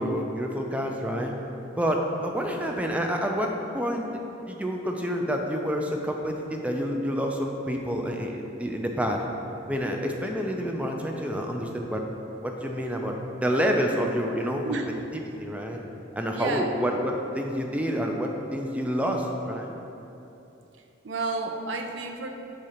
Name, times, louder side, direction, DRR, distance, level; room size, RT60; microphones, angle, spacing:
voice 1, 0.0-1.3 1.8-4.1 4.5-9.2 9.7-12.0 12.4-14.8 15.1-15.8 16.1-19.7, equal, 5° right, 1 dB, 0.4 m, -28 dB
voice 2, 16.3-16.7 21.0-22.3, right 3 dB, 65° right, 4 dB, 0.5 m, -31 dB
6.6 x 3.7 x 4.3 m, 2.9 s
head